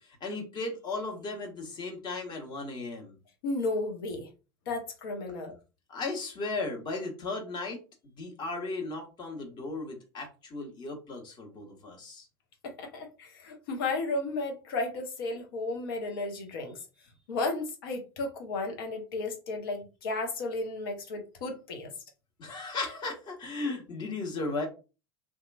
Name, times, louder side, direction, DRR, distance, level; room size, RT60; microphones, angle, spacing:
voice 1, 0.0-3.2 5.9-7.8 8.2-12.3 22.4-24.7, left 3 dB, 35° left, 1.2 m, -36 dB
voice 2, 3.4-4.3 4.7-5.5 12.6-16.8 17.3-21.9, left 3 dB, 65° left, 0.9 m, -33 dB
2.8 x 2.3 x 2.5 m
figure-of-eight pair, 85°, 13 cm